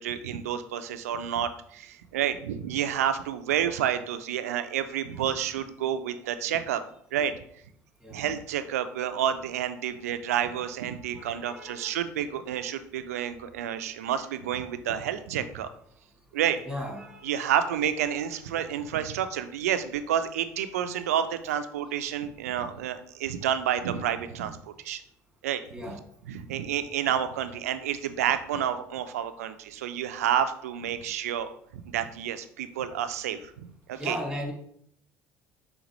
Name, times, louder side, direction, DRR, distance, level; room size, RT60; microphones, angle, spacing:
voice 1, 0.0-6.8 7.1-7.3 8.1-15.7 16.3-16.6 17.2-25.0 25.4-25.6 26.3-34.2, right 9 dB, 90° right, 10 dB, 0.4 m, -29 dB
voice 2, 11.1-12.0 16.7-17.6 25.7-26.0 34.0-34.5, equal, 5° right, 1 dB, 1.7 m, -37 dB
5.1 x 3.4 x 3.0 m, 0.68 s
hypercardioid pair, 70°, 8 cm